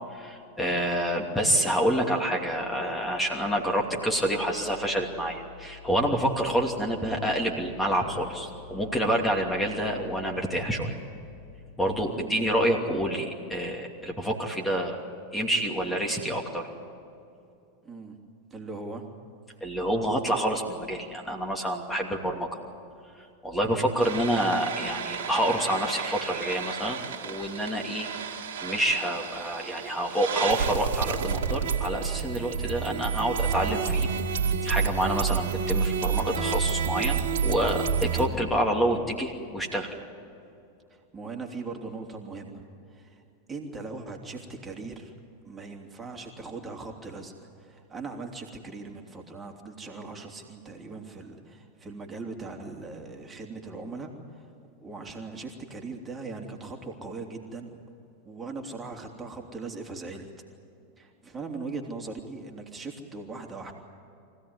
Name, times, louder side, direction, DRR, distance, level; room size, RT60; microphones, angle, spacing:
voice 1, 0.1-11.0 11.8-15.0 15.3-16.7 19.6-22.5 23.4-34.1 34.6-39.9, equal, 10° left, 1 dB, 2.8 m, -28 dB
voice 2, 17.8-18.2 18.5-19.0 23.6-23.8 36.0-36.3 38.2-38.5 40.9-42.6 42.9-43.2 43.5-45.1 45.4-47.3 47.6-54.5 54.8-57.8 58.2-60.3 61.0-63.7, right 3 dB, 20° right, 2 dB, 3.1 m, -40 dB
sound 1, 24.0-38.3, right 6 dB, 70° right, 2.3 m, -30 dB
24.5 x 16.5 x 9.7 m, 2.6 s
hypercardioid pair, 100°, 0 cm